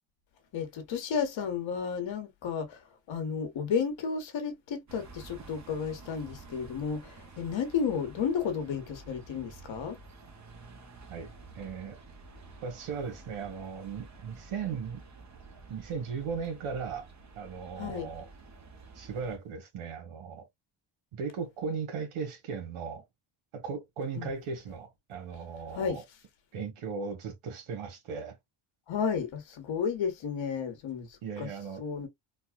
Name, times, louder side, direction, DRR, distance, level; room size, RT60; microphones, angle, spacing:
voice 1, 0.5-2.8 3.1-10.0 17.8-18.1 24.2-24.3 25.7-26.0 28.9-31.5 31.8-32.1, left 6 dB, 65° left, 1.3 m, -32 dB
sound 1, 4.9-19.4, right 3 dB, 35° right, 1.0 m, -51 dB
voice 2, 11.5-12.0 12.6-15.0 15.7-17.1 17.3-18.3 18.9-20.5 21.1-23.0 23.5-26.0 26.5-28.4 31.2-32.1, right 5 dB, 85° right, 1.4 m, -37 dB
4.0 x 2.3 x 2.3 m
cardioid pair, 115°, 49 cm